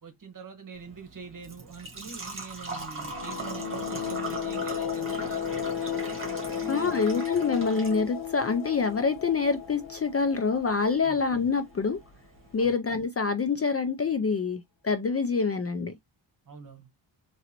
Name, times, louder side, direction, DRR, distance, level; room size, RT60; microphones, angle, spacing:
voice 1, 0.0-6.2 6.5-7.0 11.0-11.2 12.6-12.7 16.5-16.9, right 5 dB, 45° right, 1.2 m, -44 dB
Engine / Trickle dribble / Fill (with liquid), 0.7-12.7, right 3 dB, 25° right, 1.7 m, -41 dB
sound 1, 2.9-11.5, left 9 dB, 55° left, 0.9 m, -34 dB
voice 2, 6.7-12.0 12.5-15.9, left 5 dB, 35° left, 0.4 m, -26 dB
3.8 x 3.1 x 2.9 m
wide cardioid pair, 115°, 46 cm